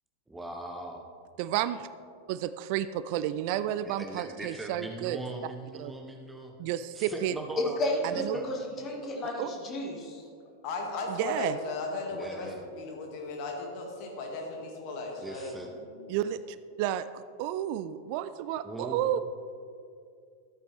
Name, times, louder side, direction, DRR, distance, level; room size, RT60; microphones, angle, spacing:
voice 1, 0.3-1.0 3.8-6.5 6.9-7.8 8.3-8.5 12.1-12.6 15.2-15.7 18.6-19.1, right 2 dB, 10° right, 2 dB, 0.9 m, -40 dB
voice 2, 1.4-1.9 2.3-5.2 5.8-5.9 6.6-7.3 8.2-8.4 9.4-9.5 11.1-11.6 16.1-19.2, right 12 dB, 45° right, 13 dB, 0.3 m, -31 dB
voice 3, 7.8-10.2, left 1 dB, 25° left, 0 dB, 2.1 m, -33 dB
voice 4, 10.6-16.2, left 3 dB, 45° left, 1 dB, 2.1 m, -36 dB
14.0 x 8.9 x 3.5 m, 2.3 s
figure-of-eight pair, 90°, 0 cm